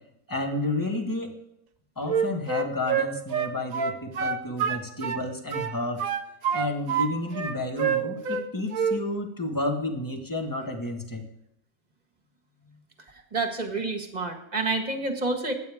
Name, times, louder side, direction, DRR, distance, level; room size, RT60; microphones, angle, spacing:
voice 1, 0.3-1.4 2.0-6.0 6.5-11.2, left 2 dB, 15° left, 3 dB, 1.5 m, -31 dB
Wind instrument woodwind instrument, 2.1-5.2 5.5-7.1 7.3-8.5 8.7-9.0, right 7 dB, 65° right, 1.2 m, -27 dB
voice 2, 13.3-15.5, right 3 dB, 25° right, 4 dB, 1.7 m, -28 dB
22.5 x 9.1 x 3.6 m, 0.83 s
omnidirectional pair, 1.6 m